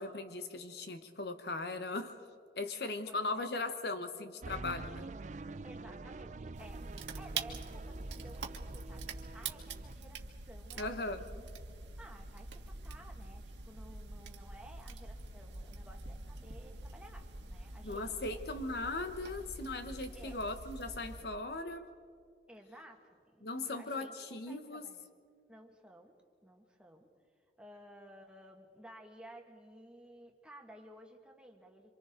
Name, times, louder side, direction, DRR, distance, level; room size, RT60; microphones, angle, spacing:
voice 1, 0.0-2.3 2.6-5.1 10.8-11.2 17.8-21.9 23.4-24.9, left 2 dB, 65° left, 8 dB, 1.1 m, -38 dB
voice 2, 3.1-3.4 4.2-4.3 5.6-11.5 12.0-18.4 20.1-20.4 22.5-25.1 25.5-26.2 26.4-27.1 27.6-31.9, right 1 dB, 5° right, 1 dB, 1.9 m, -55 dB
sound 1, 4.4-9.9, right 3 dB, 40° right, 0.4 m, -46 dB
sound 2, 4.9-18.8, equal, 40° left, 7.2 m, -66 dB
sound 3, 6.5-21.2, right 3 dB, 90° right, 1.7 m, -45 dB
27.5 x 26.5 x 3.9 m, 2.3 s
head